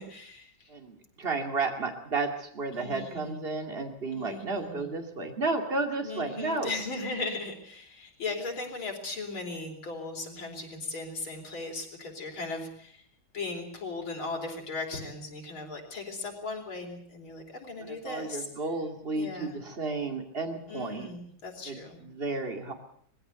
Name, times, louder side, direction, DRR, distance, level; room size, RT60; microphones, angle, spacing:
voice 1, 0.0-0.7 2.7-3.4 4.1-4.8 6.0-13.0 13.3-18.5 19.1-19.6 20.7-22.0, left 3 dB, 80° left, 1 dB, 4.8 m, -37 dB
voice 2, 0.7-6.7 17.9-21.1 21.6-22.7, right 3 dB, 30° right, 4 dB, 2.6 m, -32 dB
20.5 x 16.0 x 8.1 m, 0.63 s
omnidirectional pair, 2.2 m